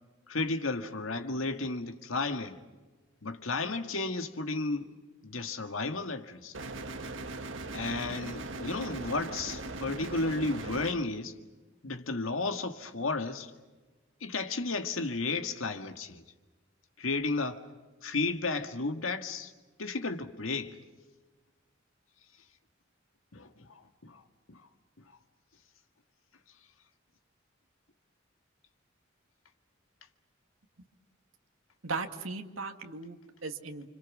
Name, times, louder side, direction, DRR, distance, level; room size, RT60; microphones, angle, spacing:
voice 1, 0.3-2.6 3.2-4.9 5.2-6.5 7.7-11.3 11.8-13.5 14.2-16.2 17.0-17.6 18.0-19.5 19.8-20.8 23.3-24.2 24.5-24.6, left 3 dB, 90° left, 1.9 m, -33 dB
sound 1, 6.5-10.9, right 2 dB, 65° right, 1.8 m, -39 dB
voice 2, 31.8-33.9, right 4 dB, 85° right, 2.2 m, -37 dB
29.5 x 26.5 x 6.2 m
head